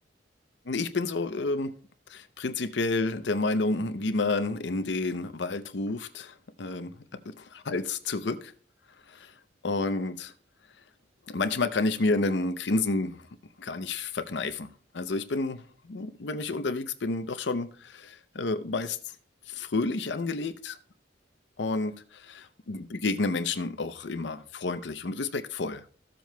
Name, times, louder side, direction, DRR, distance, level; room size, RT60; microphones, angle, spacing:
voice 1, 0.7-1.7 2.1-6.9 7.4-8.5 9.1-9.3 9.6-10.3 11.3-13.2 13.6-14.7 14.9-19.0 19.5-20.8 21.6-25.8, left 3 dB, 70° left, 0.6 m, -30 dB
15.0 x 7.6 x 2.2 m
head